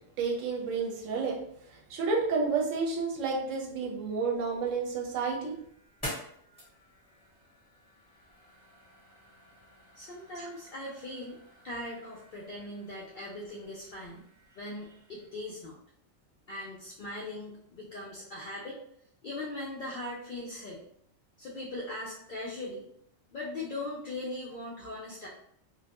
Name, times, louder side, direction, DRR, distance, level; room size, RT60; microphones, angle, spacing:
voice 1, 0.2-1.4 1.9-5.6 10.4-10.5, right 4 dB, 75° right, 0 dB, 1.0 m, -30 dB
sound 1, 4.3-15.3, equal, 10° left, 1.0 m, -49 dB
voice 2, 9.9-11.4 11.6-14.2 14.5-15.8 16.5-18.8 19.2-20.9 21.4-22.9 23.3-25.3, left 2 dB, 65° left, -4 dB, 0.5 m, -40 dB
2.4 x 2.1 x 2.8 m, 0.69 s
omnidirectional pair, 1.3 m